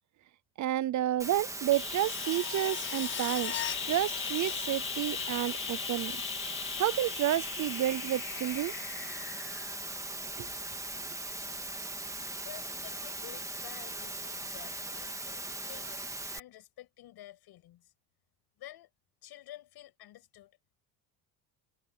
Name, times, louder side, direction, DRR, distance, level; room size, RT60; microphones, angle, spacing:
voice 1, 0.6-3.5 3.8-6.2 6.8-8.7 10.4-10.5, right 13 dB, 45° right, 0.6 m, -30 dB
Water, 1.2-16.4, right 2 dB, 5° right, 1.9 m, -39 dB
sound 1, 1.7-10.4 12.7-12.8, left 11 dB, 30° left, 0.5 m, -38 dB
voice 2, 12.4-16.1 16.3-17.9 18.6-18.9 19.2-20.6, left 14 dB, 60° left, 6.9 m, -50 dB
cardioid pair, 130°, 43 cm